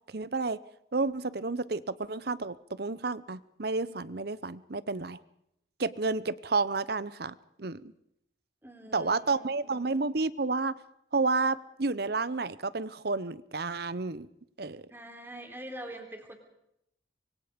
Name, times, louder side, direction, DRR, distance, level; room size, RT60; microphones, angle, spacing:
voice 1, 0.1-0.6 0.9-5.2 5.8-7.9 8.9-10.8 11.1-14.3 14.6-14.8, right 3 dB, 55° right, 17 dB, 0.8 m, -31 dB
voice 2, 8.6-9.5 14.9-16.4, right 1 dB, 10° right, 4 dB, 3.5 m, -44 dB
25.0 x 23.0 x 5.2 m, 0.77 s
head